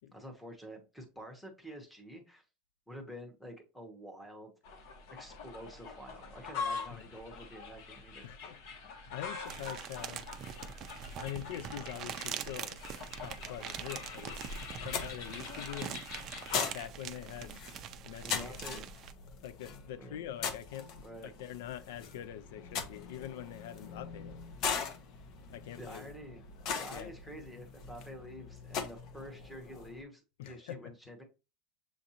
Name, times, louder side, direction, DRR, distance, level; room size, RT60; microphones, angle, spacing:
voice 1, 0.1-2.4 2.9-4.8 5.1-8.3 18.2-18.9 20.0-20.2 21.0-21.3 25.7-26.4 26.8-31.2, equal, 5° left, 1.0 m, -48 dB
sound 1, 4.6-16.6, left 5 dB, 60° left, 1.1 m, -44 dB
voice 2, 8.2-8.6 9.1-10.3 11.2-12.8 13.2-14.4 14.8-16.0 16.7-17.6 18.0-18.9 19.4-24.4 25.5-26.1 26.9-27.1 30.4-30.9, left 11 dB, 80° left, 0.4 m, -44 dB
sound 2, 9.5-19.1, right 8 dB, 35° right, 0.4 m, -43 dB
sound 3, 13.3-30.0, left 6 dB, 40° left, 0.7 m, -41 dB
7.0 x 2.5 x 2.8 m
supercardioid pair, 160°, 0 cm